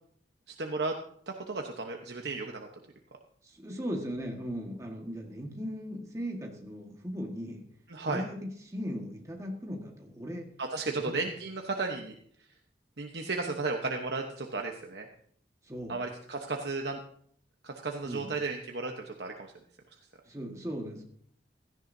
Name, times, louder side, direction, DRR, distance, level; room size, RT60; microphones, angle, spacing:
voice 1, 0.5-0.9 1.3-2.7 7.9-8.2 10.6-12.1 13.0-15.1 15.9-17.0 17.6-19.5, right 3 dB, 65° right, 2 dB, 1.0 m, -34 dB
voice 2, 3.4-7.6 8.1-10.5 11.0-11.1 15.6-16.0 18.0-18.3 20.2-21.0, equal, 15° right, 0 dB, 1.6 m, -38 dB
16.5 x 13.5 x 2.7 m, 0.63 s
head